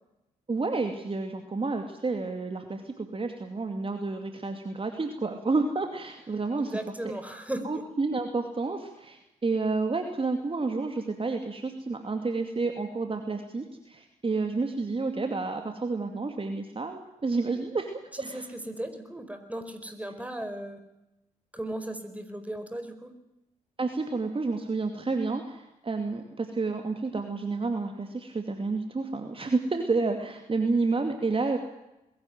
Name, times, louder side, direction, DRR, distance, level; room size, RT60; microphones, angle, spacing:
voice 1, 0.5-6.8 7.6-18.5 23.8-31.6, right 3 dB, 30° right, 5 dB, 2.5 m, -30 dB
voice 2, 6.6-7.8 18.1-20.8 21.5-23.1, right 1 dB, 10° right, 8 dB, 4.7 m, -36 dB
21.0 x 16.0 x 9.3 m, 0.93 s
hypercardioid pair, 40°, 18 cm